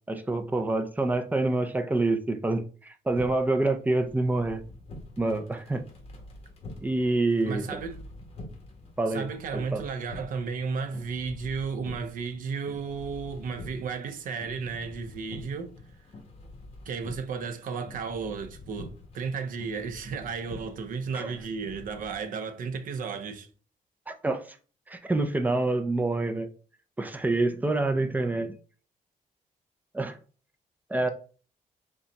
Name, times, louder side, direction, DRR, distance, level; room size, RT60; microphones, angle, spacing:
voice 1, 0.1-4.6 5.2-5.8 6.8-7.8 9.0-9.2 9.7-9.8 21.1-21.3 24.1-24.4 24.9-26.5 27.0-28.6 29.9-30.2 30.9-31.1, right 2 dB, 10° right, 0.5 m, -27 dB
sound 1, 3.1-22.1, left 2 dB, 40° left, 1.3 m, -47 dB
voice 2, 7.5-8.0 9.1-15.8 16.9-23.5, right 5 dB, 70° right, 0.7 m, -33 dB
5.4 x 2.3 x 4.0 m
cardioid pair, 150°, 15 cm